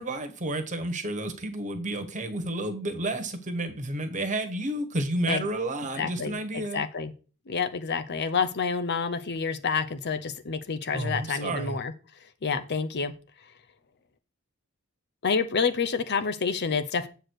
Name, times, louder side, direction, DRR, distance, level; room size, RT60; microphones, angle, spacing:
voice 1, 0.0-6.8 10.9-11.8, right 1 dB, 35° right, 1.4 m, -31 dB
voice 2, 6.0-7.1 7.5-11.9 12.4-13.1 15.2-17.1, left 5 dB, 50° left, 0.7 m, -28 dB
7.8 x 4.6 x 6.5 m
head